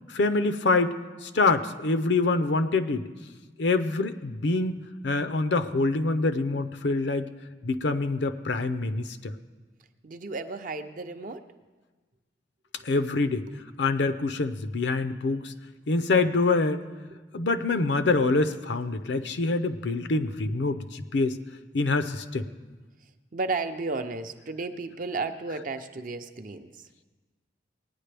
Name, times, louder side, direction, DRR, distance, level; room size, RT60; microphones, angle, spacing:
voice 1, 0.1-0.9 1.2-3.1 3.6-7.3 7.6-9.3 12.8-13.4 13.8-15.5 15.9-16.8 17.3-21.4 21.7-22.5, left 3 dB, 70° left, 10 dB, 0.6 m, -25 dB
voice 2, 10.0-11.5 13.5-13.6 17.3-17.9 18.2-18.4 19.2-19.5 23.3-26.9, right 3 dB, 45° right, 7 dB, 0.6 m, -34 dB
18.5 x 9.7 x 3.4 m, 1.3 s
head